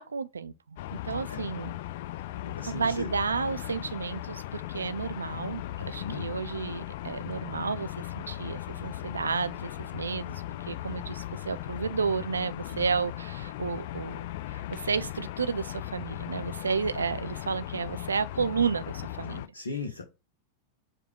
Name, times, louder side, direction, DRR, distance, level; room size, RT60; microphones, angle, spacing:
voice 1, 0.0-1.8 2.7-14.2 14.5-19.5, right 5 dB, 75° right, 0.3 m, -32 dB
sound 1, 0.8-19.5, left 14 dB, 55° left, 0.3 m, -38 dB
voice 2, 2.4-3.1 5.8-6.3 12.7-12.9 19.5-20.0, left 3 dB, 70° left, 0.7 m, -37 dB
4.8 x 2.2 x 4.6 m
figure-of-eight pair, 90°, 0 cm